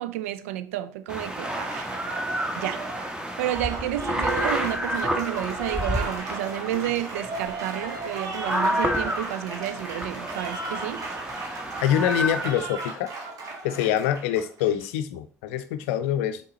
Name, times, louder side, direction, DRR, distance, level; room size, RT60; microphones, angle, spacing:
voice 1, 0.0-1.9 2.6-2.9 3.4-11.1, right 13 dB, 75° right, 0.4 m, -31 dB
sound 1, 1.1-12.5, equal, 10° right, 1.3 m, -30 dB
Applause, 1.2-14.8, right 3 dB, 50° right, 1.6 m, -36 dB
voice 2, 11.8-13.1 13.6-16.4, left 10 dB, 70° left, 0.5 m, -25 dB
7.2 x 3.8 x 4.2 m
figure-of-eight pair, 50°, 8 cm